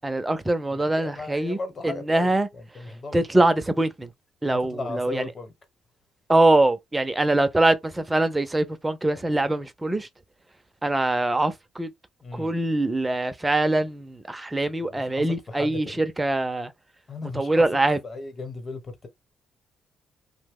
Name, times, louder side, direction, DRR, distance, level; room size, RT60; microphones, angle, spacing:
voice 1, 0.0-1.6 1.8-2.5 3.1-4.1 4.4-5.3 6.3-10.1 10.8-11.9 12.3-16.7 17.3-18.0, right 2 dB, 15° right, 0.5 m, -23 dB
voice 2, 0.7-3.3 4.4-5.5 12.2-12.5 14.8-16.0 17.1-17.7 18.0-19.1, left 3 dB, 35° left, 1.0 m, -37 dB
2.8 x 2.1 x 3.5 m
cardioid pair, 90°, 0 cm